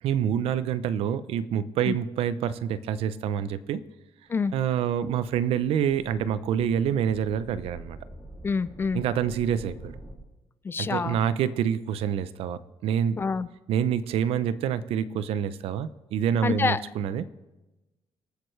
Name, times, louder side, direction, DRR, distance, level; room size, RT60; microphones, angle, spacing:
voice 1, 0.0-3.8 4.5-8.0 8.9-9.9 10.8-13.2 13.7-17.2, right 9 dB, 75° right, 15 dB, 0.6 m, -27 dB
sound 1, 4.4-10.1, equal, 10° right, 2.6 m, -47 dB
voice 2, 8.4-9.0 10.6-11.2 13.2-13.5 16.4-16.8, left 5 dB, 25° left, 16 dB, 0.3 m, -26 dB
26.0 x 9.0 x 3.2 m, 1.1 s
cardioid pair, 150°, 10 cm